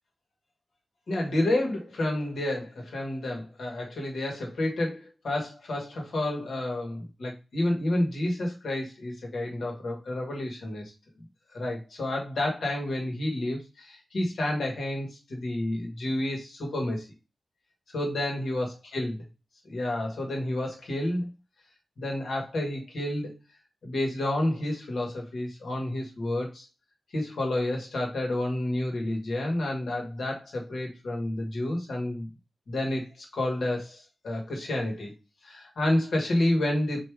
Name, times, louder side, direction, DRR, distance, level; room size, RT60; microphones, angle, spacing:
voice 1, 1.1-10.8 11.5-17.1 17.9-19.2 19.6-21.3 22.0-23.3 23.8-26.6 27.1-32.3 32.7-35.1 35.4-37.0, left 1 dB, 80° left, 1 dB, 1.6 m, -30 dB
3.3 x 2.9 x 4.6 m, 0.29 s
cardioid pair, 40°, 0 cm